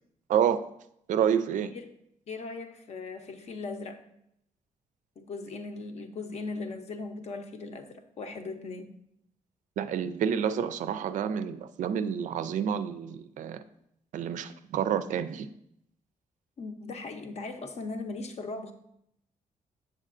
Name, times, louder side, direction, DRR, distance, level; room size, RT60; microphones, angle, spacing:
voice 1, 0.3-0.6 1.1-1.7 9.8-13.6 14.1-15.5, right 8 dB, 70° right, 12 dB, 0.4 m, -28 dB
voice 2, 2.3-4.0 5.2-9.0 16.6-18.7, left 3 dB, 55° left, 7 dB, 0.6 m, -38 dB
7.5 x 6.5 x 2.5 m, 0.76 s
cardioid pair, 110°, 13 cm